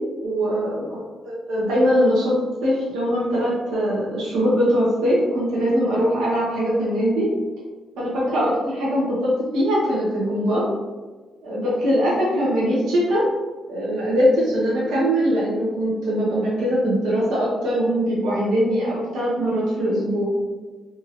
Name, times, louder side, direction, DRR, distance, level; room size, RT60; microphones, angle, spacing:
voice 1, 0.2-0.8 1.5-2.3 2.6-7.3 8.0-10.6 11.4-13.2 13.7-20.3, equal, 85° right, -7 dB, 0.7 m, -21 dB
2.8 x 2.7 x 2.5 m, 1.3 s
cardioid pair, 90°, 0 cm